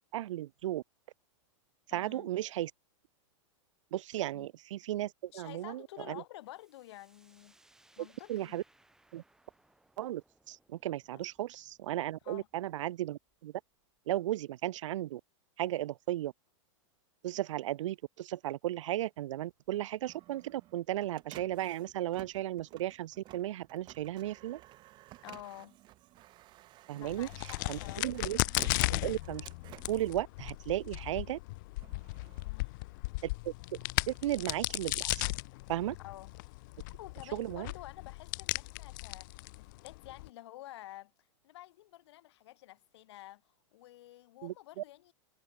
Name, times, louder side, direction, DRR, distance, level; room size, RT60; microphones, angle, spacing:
voice 1, 0.1-0.8 1.9-2.7 3.9-5.8 6.1-6.2 8.3-8.6 9.1-9.2 10.0-10.2 10.5-13.5 14.1-15.2 15.6-16.3 17.2-24.6 26.9-27.3 27.7-28.4 28.9-29.4 29.9-31.4 33.4-33.5 34.1-35.3 35.7-35.9 37.3-37.7 44.4-44.8, right 14 dB, 75° right, 0.6 m, -35 dB
voice 2, 1.9-2.3 4.3-4.5 5.3-7.6 8.0-8.6 11.1-11.2 12.2-12.5 25.2-25.8 26.9-28.2 32.4-32.7 36.0-36.3 37.0-41.1 41.4-45.1, left 16 dB, 60° left, 0.9 m, -50 dB
sound 1, 6.4-14.0, right 1 dB, 5° right, 7.8 m, -68 dB
Printer, 19.7-31.1 31.5-33.4, right 16 dB, 30° right, 4.3 m, -55 dB
Crack, 27.0-40.3, left 24 dB, 40° left, 0.5 m, -36 dB
supercardioid pair, 165°, 16 cm